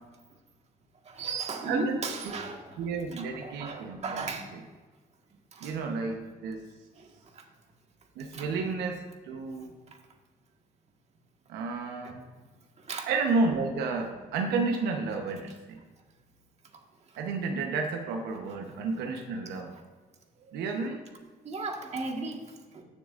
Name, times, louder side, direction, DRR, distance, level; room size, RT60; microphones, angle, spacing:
voice 1, 1.0-2.7 3.2-4.5 5.5-5.8 7.0-7.1 7.3-7.4 8.3-8.5 12.0-12.2 12.8-13.1 18.6-18.7 21.4-22.4 22.7-22.8, right 3 dB, 40° right, 2 dB, 1.7 m, -35 dB
voice 2, 1.7-2.0 2.2-4.6 5.6-6.6 8.2-9.0 9.3-9.7 11.5-12.2 13.1-15.8 17.2-19.7 20.5-21.0, right 4 dB, 85° right, 3 dB, 1.1 m, -31 dB
16.5 x 7.0 x 2.6 m, 1.4 s
cardioid pair, 110°, 17 cm